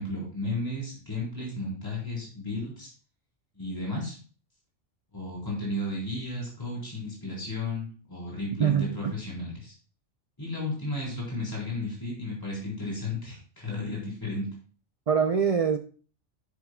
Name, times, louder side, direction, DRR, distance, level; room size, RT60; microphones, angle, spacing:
voice 1, 0.0-2.9 3.6-4.2 5.1-9.7 10.4-14.5, left 2 dB, 15° left, -5 dB, 3.9 m, -33 dB
voice 2, 8.6-9.2 15.1-15.8, right 7 dB, 75° right, 9 dB, 0.3 m, -24 dB
10.0 x 9.6 x 2.2 m, 0.40 s
omnidirectional pair, 1.3 m